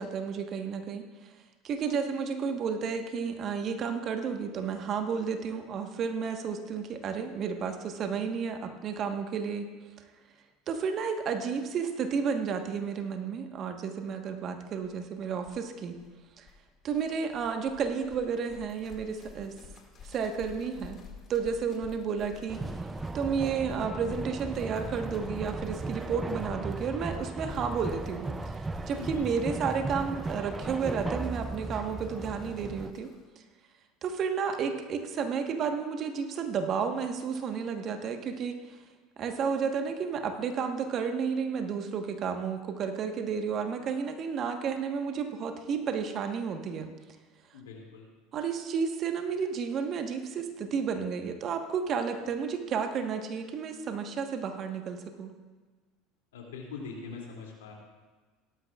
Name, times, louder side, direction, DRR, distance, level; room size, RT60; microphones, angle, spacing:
voice 1, 0.0-1.3 1.6-9.7 10.7-15.9 16.4-16.5 16.8-19.5 20.0-21.0 21.3-22.6 23.1-28.3 28.5-33.1 34.0-38.8 39.2-46.9 48.3-55.3, right 6 dB, 45° right, 5 dB, 1.3 m, -32 dB
sound 1, 14.8-14.9 15.1-15.2 15.4-33.3, left 5 dB, 40° left, 2.2 m, -50 dB
sound 2, 22.5-32.9, right 3 dB, 20° right, 0.5 m, -36 dB
voice 2, 29.0-29.3 47.5-48.1 56.3-57.7, left 4 dB, 80° left, -1 dB, 2.7 m, -42 dB
17.0 x 12.5 x 2.5 m, 1.4 s
hypercardioid pair, 75°, 0 cm